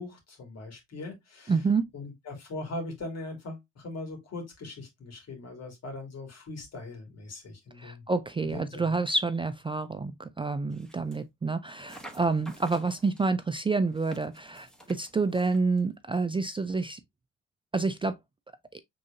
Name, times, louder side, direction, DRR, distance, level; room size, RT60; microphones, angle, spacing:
voice 1, 0.0-1.6 1.9-8.0 8.4-8.9, left 2 dB, 55° left, 2.5 m, -40 dB
voice 2, 1.5-1.9 7.8-17.0 17.7-18.2 18.7-18.8, right 4 dB, 15° right, 0.4 m, -28 dB
sound 1, 10.7-11.3 11.8-13.3 13.9-15.9, right 1 dB, ahead, 1.3 m, -51 dB
5.4 x 3.8 x 2.5 m
cardioid pair, 90°, 30 cm